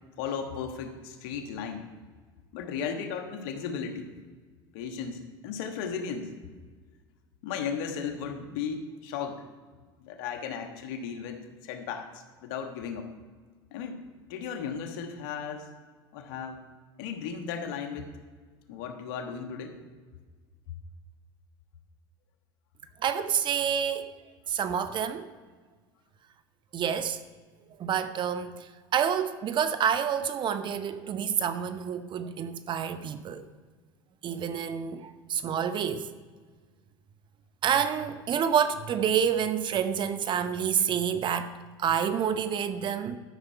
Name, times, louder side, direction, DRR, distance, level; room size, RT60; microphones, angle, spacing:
voice 1, 0.2-1.9 2.5-4.1 4.7-6.3 7.4-9.4 10.0-13.1 13.7-14.0 14.3-15.7 16.1-16.6 17.0-18.1 18.7-19.7, left 6 dB, 70° left, 1.5 m, -35 dB
voice 2, 23.0-24.1 24.5-25.3 26.7-27.2 27.8-33.5 34.2-36.1 37.6-43.2, right 8 dB, 40° right, 0.8 m, -28 dB
12.0 x 6.8 x 4.6 m
hypercardioid pair, 90°, 12 cm